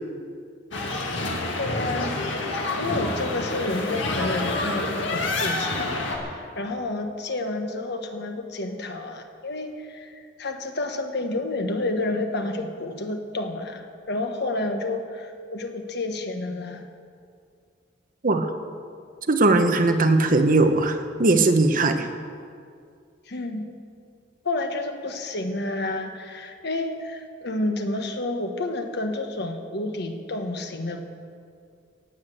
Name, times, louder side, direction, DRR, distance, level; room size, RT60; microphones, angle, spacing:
sound 1, 0.7-6.2, left 2 dB, 80° left, 2.1 m, -28 dB
voice 1, 1.6-16.9 23.3-23.7 24.4-31.0, left 2 dB, 65° left, 5 dB, 1.4 m, -30 dB
voice 2, 19.3-22.1, right 2 dB, 50° right, 7 dB, 1.1 m, -19 dB
18.0 x 8.3 x 7.7 m, 2.3 s
head